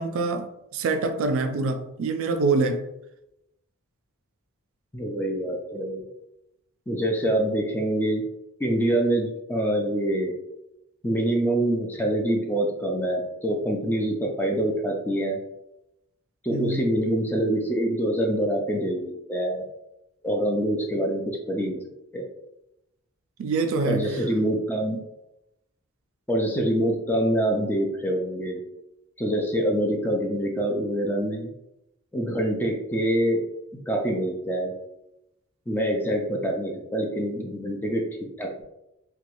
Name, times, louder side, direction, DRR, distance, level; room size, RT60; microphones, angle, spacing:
voice 1, 0.0-2.9 16.5-16.9 23.4-24.2, right 3 dB, 65° right, 0.3 m, -25 dB
voice 2, 4.9-6.0 6.9-8.2 8.6-10.3 11.0-15.4 16.4-19.6 20.2-21.8 22.1-22.3 23.8-25.0 26.3-28.6 29.2-31.5 32.1-33.4 33.9-34.7 35.7-38.6, right 1 dB, 10° left, 0.5 m, -25 dB
3.0 x 2.3 x 3.0 m
head